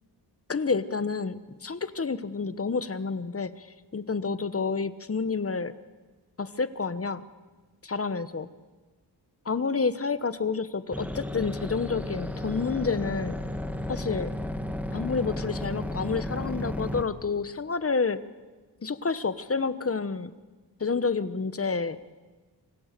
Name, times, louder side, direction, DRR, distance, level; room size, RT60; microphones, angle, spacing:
voice 1, 0.5-5.7 6.4-7.2 7.8-8.5 9.4-13.4 13.9-14.3 14.9-18.2 18.8-20.3 20.8-22.0, left 4 dB, 35° left, 14 dB, 1.1 m, -29 dB
sound 1, 10.9-17.0, left 1 dB, 5° right, 1.9 m, -33 dB
27.5 x 25.5 x 6.8 m, 1.3 s
wide cardioid pair, 125°, 41 cm